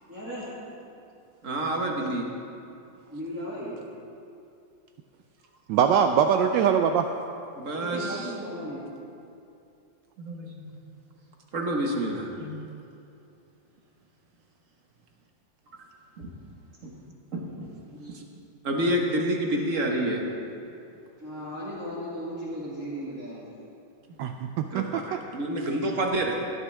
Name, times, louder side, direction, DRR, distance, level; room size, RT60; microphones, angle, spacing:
voice 1, 0.1-0.5 3.1-3.8 7.7-8.8 17.9-18.3 18.6-18.8 21.2-23.6, equal, 10° right, -10 dB, 1.9 m, -36 dB
voice 2, 1.4-2.2 7.5-8.3 10.2-10.7 11.5-12.5 16.2-16.3 16.8-16.9 17.3-17.7 18.0-18.2 18.6-20.2 24.7-26.4, right 1 dB, 45° right, 0 dB, 1.5 m, -28 dB
voice 3, 5.7-7.1 24.2-25.2, right 8 dB, 75° right, 6 dB, 1.2 m, -23 dB
17.5 x 12.5 x 3.3 m, 2.6 s
omnidirectional pair, 2.1 m